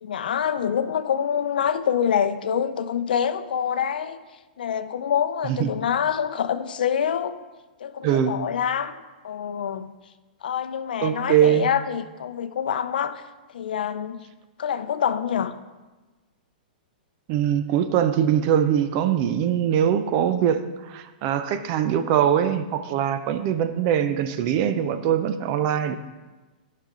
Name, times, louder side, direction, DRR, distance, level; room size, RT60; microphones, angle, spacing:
voice 1, 0.0-4.2 4.6-7.4 7.8-8.9 9.2-9.9 10.4-13.2 13.5-14.3 14.6-15.5, left 8 dB, 80° left, 11 dB, 0.5 m, -26 dB
voice 2, 8.0-8.4 11.0-11.7 17.3-25.9, right 9 dB, 30° right, 10 dB, 0.4 m, -22 dB
10.5 x 5.6 x 3.8 m, 1.2 s
hypercardioid pair, 160°, 5 cm